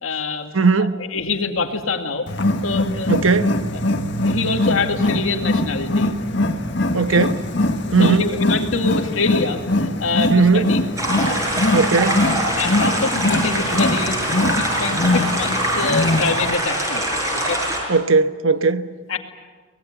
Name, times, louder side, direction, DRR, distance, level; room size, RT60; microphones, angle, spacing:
voice 1, 0.0-0.5 0.8-2.3 2.6-3.2 3.7-3.8 4.2-6.1 6.9-7.2 8.0-10.8 12.6-17.0 17.3-17.6 19.1-19.2, left 3 dB, 80° left, 2.3 m, -25 dB
voice 2, 0.5-1.0 3.1-3.6 6.9-7.4 7.9-8.3 10.3-10.7 11.7-12.3 17.9-18.9, right 4 dB, 85° right, 1.1 m, -17 dB
Wild animals, 2.3-16.6, left 2 dB, 60° left, 1.7 m, -22 dB
sound 1, 11.0-17.8, right 1 dB, 15° right, 6.4 m, -23 dB
24.0 x 19.5 x 9.1 m
head